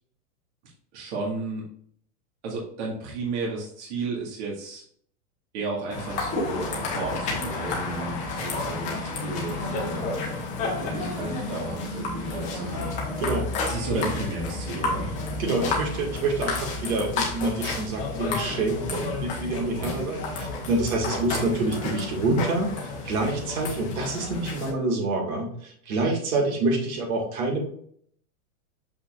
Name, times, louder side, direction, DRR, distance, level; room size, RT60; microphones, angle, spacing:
voice 1, 0.9-1.7 2.4-4.8 5.5-10.3 10.8-13.0 13.6-15.1 15.4-15.7 19.7-19.9, right 3 dB, 50° right, -3 dB, 2.1 m, -33 dB
sound 1, 5.9-24.7, left 3 dB, 15° left, 1.0 m, -31 dB
voice 2, 13.2-13.5 13.9-14.1 15.4-27.6, right 2 dB, 70° right, 0 dB, 2.3 m, -27 dB
6.7 x 5.6 x 2.6 m, 0.62 s
supercardioid pair, 175°, 44 cm